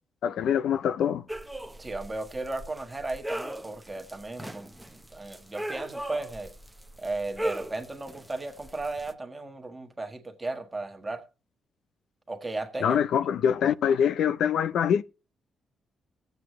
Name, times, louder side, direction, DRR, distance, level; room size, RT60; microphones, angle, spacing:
voice 1, 0.2-1.2 12.8-15.0, left 8 dB, 80° left, 0.5 m, -24 dB
sound 1, 1.3-9.1, right 1 dB, 5° right, 0.8 m, -39 dB
voice 2, 1.8-6.5 7.0-11.2 12.3-13.0, right 2 dB, 20° right, 1.6 m, -35 dB
19.0 x 8.0 x 3.1 m
cardioid pair, 110°, 0 cm